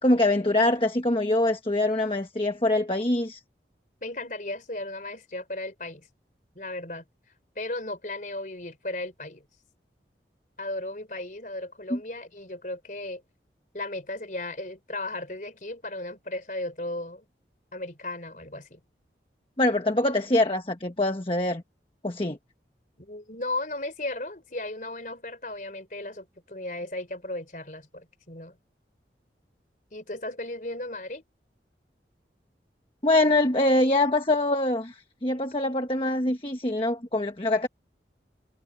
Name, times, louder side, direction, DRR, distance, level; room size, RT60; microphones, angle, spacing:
voice 1, 0.0-3.4 11.9-12.0 19.6-21.6 22.0-22.4 33.0-37.7, left 2 dB, 30° left, 1.3 m, -24 dB
voice 2, 4.0-6.1 6.5-7.0 7.6-9.5 10.6-13.2 13.7-17.3 17.7-18.8 23.0-28.6 29.9-31.2, left 2 dB, 45° left, 4.3 m, -35 dB
head